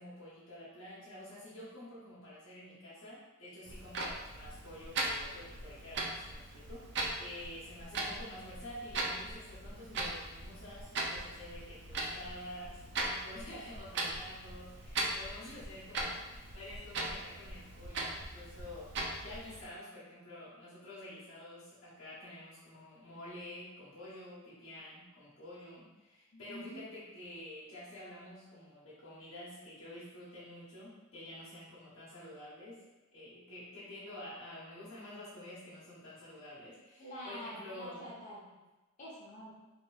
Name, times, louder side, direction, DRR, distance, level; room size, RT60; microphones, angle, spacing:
voice 1, 0.0-18.9 19.2-38.1, left 1 dB, 75° left, -9 dB, 1.1 m, -49 dB
Clock, 3.6-19.7, right 2 dB, 55° right, 0.4 m, -40 dB
voice 2, 26.3-26.9 37.0-38.6 39.0-39.5, equal, 35° left, -7 dB, 1.0 m, -47 dB
3.4 x 2.7 x 2.4 m, 1.1 s
head